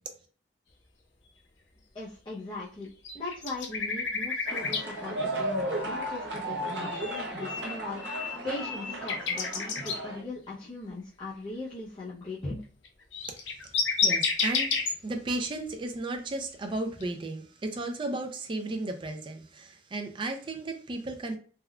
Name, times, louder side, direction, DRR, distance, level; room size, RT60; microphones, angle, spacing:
voice 1, 1.9-12.6, left 2 dB, 25° left, -8 dB, 0.5 m, -39 dB
sound 1, 3.0-4.8 6.8-10.0 12.8-12.9 13.1-14.9 17.0-17.1, left 5 dB, 85° left, 0.6 m, -30 dB
sound 2, 4.5-10.2, right 1 dB, 65° right, 0.7 m, -34 dB
voice 2, 14.0-21.4, right 2 dB, 25° right, 5 dB, 0.4 m, -34 dB
3.5 x 2.2 x 2.2 m, 0.41 s
head